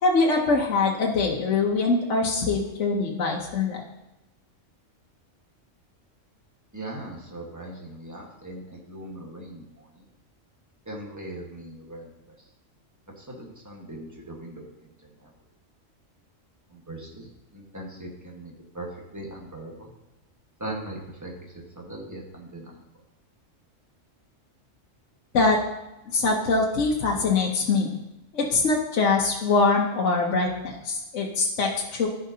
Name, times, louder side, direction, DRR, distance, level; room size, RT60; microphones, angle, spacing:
voice 1, 0.0-3.8 25.3-25.6 26.1-27.9 28.3-32.1, left 3 dB, 65° left, -1 dB, 1.2 m, -23 dB
voice 2, 6.7-10.0 10.8-12.1 13.2-14.7 15.2-15.3 16.7-17.3 17.5-18.9 19.1-19.9 20.6-22.8, right 1 dB, 15° right, -1 dB, 1.4 m, -39 dB
14.5 x 5.0 x 2.8 m, 0.98 s
omnidirectional pair, 1.3 m